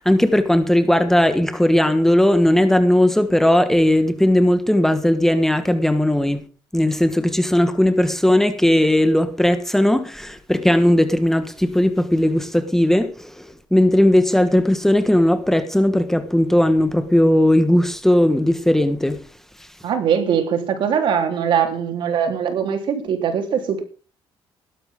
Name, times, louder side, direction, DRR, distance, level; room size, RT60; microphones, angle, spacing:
voice 1, 0.0-6.4 6.7-13.4 13.7-19.2, left 1 dB, 5° left, 1.4 m, -17 dB
voice 2, 19.8-23.8, right 7 dB, 60° right, 3.7 m, -21 dB
17.0 x 13.0 x 3.8 m
cardioid pair, 115°, 9 cm